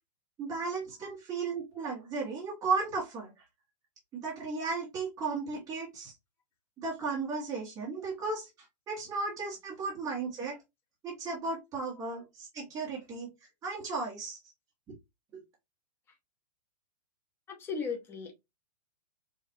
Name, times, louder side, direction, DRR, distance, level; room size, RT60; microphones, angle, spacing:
voice 1, 0.4-3.3 4.1-6.1 6.8-8.5 8.9-10.6 11.0-13.3 13.6-14.4, right 4 dB, 15° right, 1.4 m, -35 dB
voice 2, 17.5-18.3, left 5 dB, 10° left, 0.7 m, -36 dB
4.9 x 2.5 x 2.7 m
hypercardioid pair, 160°, 21 cm